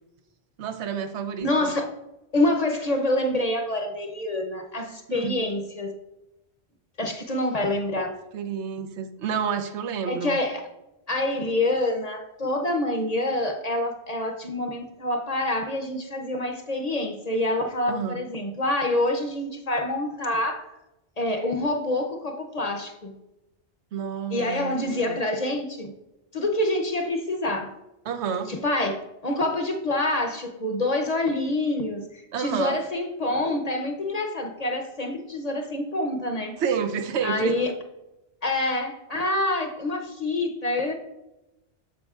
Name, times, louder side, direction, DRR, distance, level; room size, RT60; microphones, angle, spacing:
voice 1, 0.6-1.7 5.1-5.4 8.3-10.4 17.9-18.2 23.9-25.2 28.1-28.5 32.3-32.8 36.6-37.5, right 7 dB, 80° right, 9 dB, 1.0 m, -29 dB
voice 2, 1.4-1.9 2.3-5.9 7.0-8.2 10.1-10.7 11.1-20.7 21.2-23.1 24.3-25.9 26.3-27.7 28.5-29.0 29.2-36.6 37.2-37.7 38.4-40.9, left 1 dB, 40° left, 4 dB, 0.7 m, -26 dB
13.5 x 5.2 x 2.4 m, 0.95 s
omnidirectional pair, 1.2 m